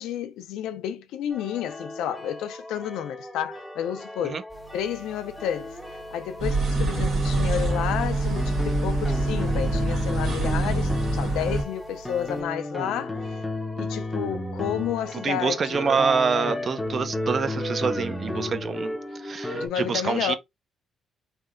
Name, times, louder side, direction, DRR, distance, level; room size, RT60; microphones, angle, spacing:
voice 1, 0.0-4.4 4.7-13.2 13.8-15.9 19.5-20.4, left 10 dB, 90° left, 0.4 m, -31 dB
sound 1, 1.3-19.7, left 1 dB, 10° left, 0.6 m, -34 dB
sound 2, 4.5-12.4, right 7 dB, 25° right, 1.0 m, -51 dB
sound 3, 6.4-11.6, right 2 dB, 65° right, 1.2 m, -25 dB
voice 2, 15.2-20.4, right 5 dB, 45° right, 0.5 m, -26 dB
3.3 x 2.7 x 2.4 m
cardioid pair, 90°, 0 cm